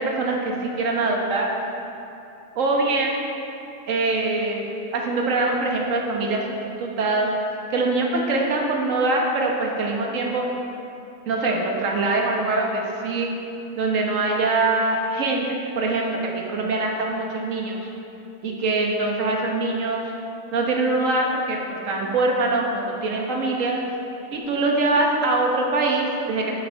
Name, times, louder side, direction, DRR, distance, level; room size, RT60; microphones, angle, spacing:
voice 1, 0.0-1.5 2.5-3.2 3.9-4.7 4.9-6.4 6.8-7.3 7.7-10.4 11.3-13.3 13.8-17.8 18.4-20.0 20.5-23.8 24.3-26.6, right 2 dB, 60° right, 0 dB, 1.5 m, -23 dB
10.0 x 7.8 x 4.6 m, 2.8 s
omnidirectional pair, 1.6 m